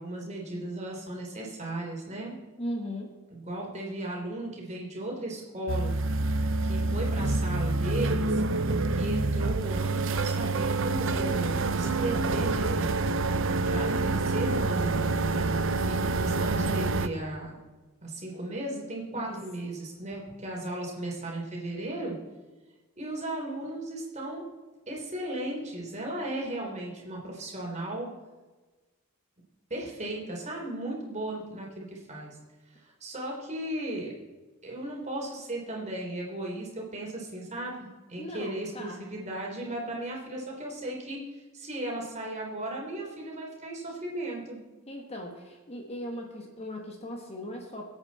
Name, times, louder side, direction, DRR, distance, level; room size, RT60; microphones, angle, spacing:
voice 1, 0.0-2.4 3.3-5.9 6.6-8.4 8.9-13.1 13.6-15.0 15.8-17.6 18.0-22.1 23.0-24.4 24.9-28.1 29.7-32.4 32.7-34.1 34.6-44.6, right 1 dB, 30° right, -2 dB, 3.5 m, -36 dB
voice 2, 2.6-3.1 19.1-19.4 38.2-39.0 44.9-47.9, left 1 dB, 30° left, 1 dB, 1.5 m, -38 dB
sound 1, 5.7-17.1, right 3 dB, 60° right, 0.7 m, -27 dB
24.0 x 8.6 x 4.2 m, 1.2 s
head